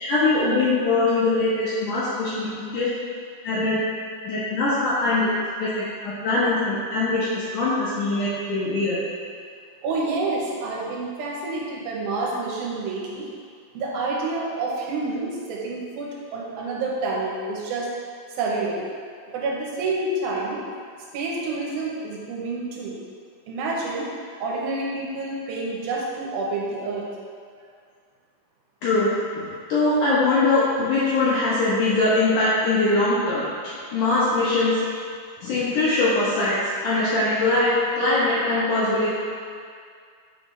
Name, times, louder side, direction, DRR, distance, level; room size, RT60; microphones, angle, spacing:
voice 1, 0.0-2.9 3.4-3.8 4.2-5.3 5.6-9.0 28.8-29.1 29.3-34.8 35.4-39.2, left 2 dB, 70° left, -9 dB, 2.1 m, -22 dB
voice 2, 9.8-13.3 13.7-17.9 18.4-18.9 19.3-20.6 21.1-23.0 23.5-24.1 24.4-27.1, right 3 dB, 75° right, -3 dB, 2.5 m, -28 dB
8.3 x 4.8 x 3.2 m, 2.2 s
omnidirectional pair, 4.5 m